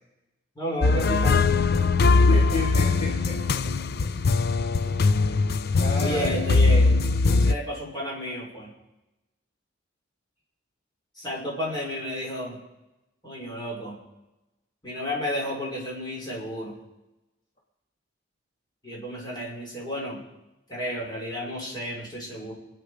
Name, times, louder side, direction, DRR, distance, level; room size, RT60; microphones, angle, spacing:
voice 1, 0.6-1.4 1.7-1.9 6.0-6.9 7.4-8.7 11.2-12.6 13.2-13.9 14.8-16.7 18.8-20.2 20.7-22.5, equal, 25° left, -3 dB, 5.6 m, -32 dB
sound 1, 0.8-7.6, left 3 dB, 55° left, 0.6 m, -21 dB
voice 2, 2.1-3.6 4.9-5.5 5.7-6.3, left 2 dB, 40° left, -2 dB, 2.3 m, -32 dB
26.5 x 9.5 x 5.0 m, 0.98 s
head